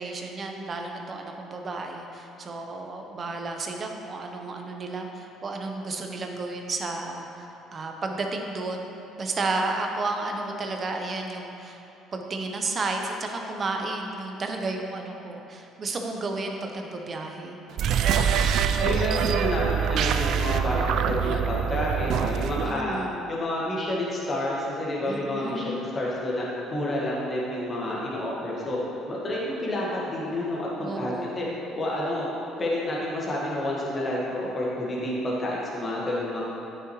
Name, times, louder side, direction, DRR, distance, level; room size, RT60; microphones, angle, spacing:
voice 1, 0.0-7.5 7.7-8.8 9.2-11.8 12.1-17.6 18.5-18.8 22.6-23.2 25.0-25.9 30.8-31.4, right 3 dB, 40° right, 3 dB, 0.9 m, -32 dB
sound 1, 17.7-22.8, right 7 dB, 65° right, 0.4 m, -24 dB
voice 2, 18.8-23.0 23.3-26.5 26.7-28.8 29.1-31.5 31.8-32.3 32.6-36.4, left 1 dB, 35° left, -5 dB, 1.6 m, -29 dB
9.1 x 6.1 x 3.2 m, 2.8 s
supercardioid pair, 70°, 0 cm